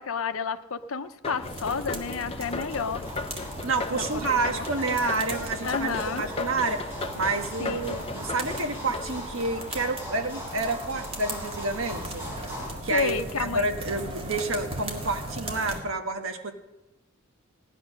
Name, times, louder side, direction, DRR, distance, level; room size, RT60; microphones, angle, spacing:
voice 1, 0.0-3.0 3.9-4.6 5.6-6.3 7.6-7.9 12.9-13.7, left 5 dB, 70° left, 10 dB, 0.7 m, -31 dB
sound 1, 1.2-10.3, left 3 dB, 25° left, 0.6 m, -37 dB
sound 2, 1.4-15.8, right 1 dB, 25° right, 2.1 m, -39 dB
sound 3, 1.7-12.7, equal, 10° right, 4.1 m, -40 dB
voice 2, 3.6-12.2 12.8-16.5, right 3 dB, 65° right, 5 dB, 1.4 m, -29 dB
16.5 x 10.5 x 6.4 m, 1.0 s
head